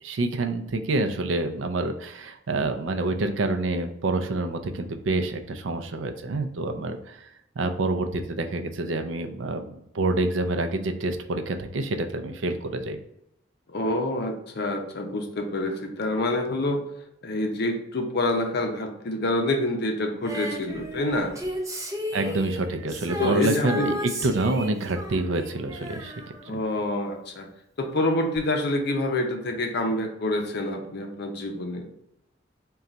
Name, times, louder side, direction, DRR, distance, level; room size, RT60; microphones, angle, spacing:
voice 1, 0.0-7.3 7.6-9.7 9.9-13.0 22.1-26.1 26.5-26.6, right 2 dB, 80° right, 6 dB, 0.5 m, -27 dB
voice 2, 13.7-16.8 17.2-21.3 22.2-22.4 23.2-23.9 26.5-27.5 27.8-31.9, left 1 dB, 60° left, 4 dB, 0.6 m, -27 dB
Female singing, 20.2-27.2 28.3-28.4, equal, 15° right, 0.7 m, -34 dB
3.8 x 2.3 x 4.1 m, 0.79 s
head